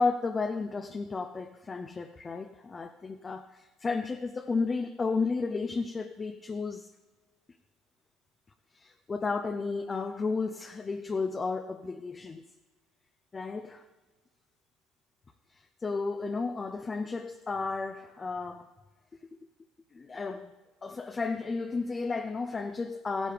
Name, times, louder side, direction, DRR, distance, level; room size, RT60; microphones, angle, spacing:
voice 1, 0.0-6.9 8.7-12.4 13.3-13.8 15.8-18.7 19.9-20.5 20.8-23.3, left 4 dB, 30° left, 6 dB, 0.6 m, -33 dB
15.5 x 10.0 x 3.4 m, 1.3 s
hypercardioid pair, 65°, 0 cm